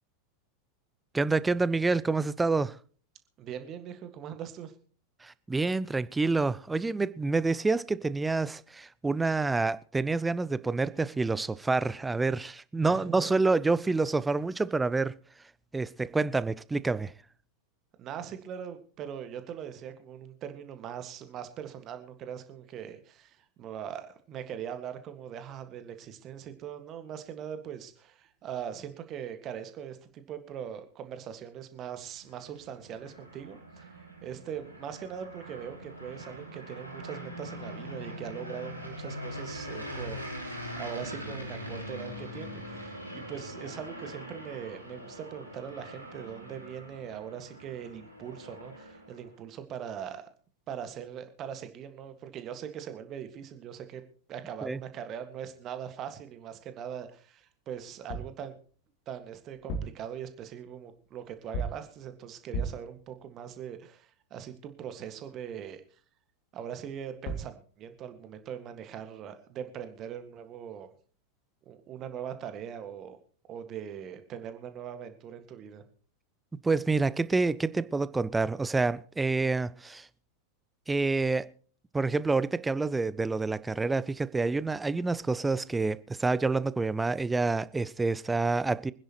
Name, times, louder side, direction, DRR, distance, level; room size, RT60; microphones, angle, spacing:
voice 1, 1.1-2.8 5.2-15.1 15.7-17.1 54.6-54.8 76.6-80.1 80.9-81.5 81.9-88.9, right 3 dB, 10° right, 0.6 m, -28 dB
voice 2, 3.4-4.7 12.9-13.3 18.0-50.3 50.7-54.0 54.3-58.6 59.1-65.8 66.5-70.9 71.7-73.2 73.5-75.8, right 9 dB, 30° right, 1.8 m, -41 dB
sound 1, 32.1-49.3, equal, 90° left, 3.3 m, -42 dB
sound 2, 58.1-58.4 59.5-60.1 61.5-61.9 62.5-62.9 67.0-67.1 67.3-67.6, right 2 dB, 40° left, 2.3 m, -35 dB
25.0 x 10.5 x 3.0 m
figure-of-eight pair, 90°, 0 cm